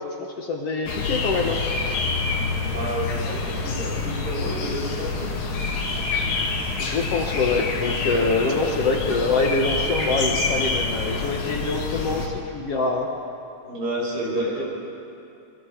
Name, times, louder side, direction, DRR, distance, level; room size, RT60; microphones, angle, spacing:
voice 1, 0.0-2.0 6.8-13.1 14.5-14.6, left 3 dB, 60° left, 1 dB, 1.8 m, -25 dB
sound 1, 0.9-12.3, left 3 dB, 75° left, 3.6 m, -27 dB
voice 2, 2.7-5.3 13.6-14.7, right 1 dB, 80° right, -4 dB, 7.3 m, -30 dB
25.0 x 24.0 x 4.5 m, 2.7 s
omnidirectional pair, 4.0 m